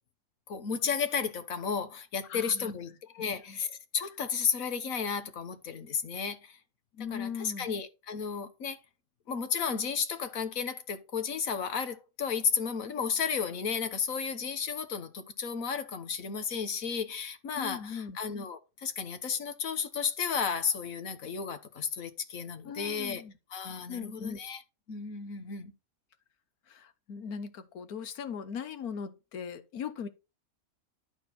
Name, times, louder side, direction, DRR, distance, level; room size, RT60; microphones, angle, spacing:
voice 1, 0.5-6.6 7.1-8.8 9.3-23.2 23.5-24.6 24.9-25.7, left 6 dB, 70° left, 1.6 m, -33 dB
voice 2, 2.3-2.7 3.2-3.6 6.9-7.7 17.5-18.2 22.6-23.3 23.9-24.4 26.7-30.1, left 7 dB, 85° left, 1.5 m, -39 dB
11.5 x 4.4 x 4.3 m
omnidirectional pair, 1.5 m